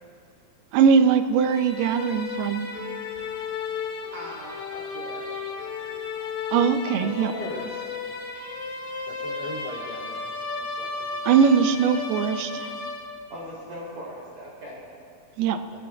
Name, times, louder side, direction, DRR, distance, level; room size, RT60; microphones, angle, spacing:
voice 1, 0.7-2.7 6.5-7.3 11.3-12.7 15.4-15.6, right 7 dB, 80° right, 9 dB, 2.5 m, -20 dB
sound 1, 1.4-13.5, left 4 dB, 55° left, 2.7 m, -34 dB
voice 2, 3.7-5.3 13.3-14.8, equal, 55° right, -6 dB, 4.5 m, -40 dB
voice 3, 7.0-7.8 9.1-10.2 10.6-11.1, left 3 dB, 85° left, -3 dB, 5.3 m, -37 dB
24.0 x 22.0 x 2.4 m, 2.3 s
omnidirectional pair, 4.6 m